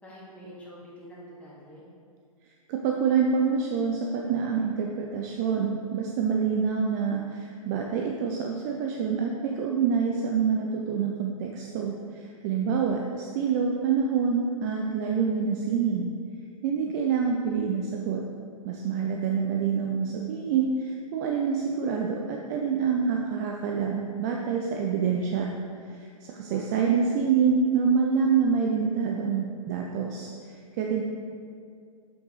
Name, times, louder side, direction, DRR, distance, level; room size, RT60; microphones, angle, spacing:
voice 1, 0.0-1.8 26.4-26.9, equal, 5° left, -6 dB, 1.3 m, -46 dB
voice 2, 2.7-16.1 16.6-18.2 18.6-25.5 25.9-31.0, right 6 dB, 30° right, 1 dB, 0.4 m, -26 dB
6.4 x 5.6 x 2.9 m, 2.2 s
figure-of-eight pair, 110°, 18 cm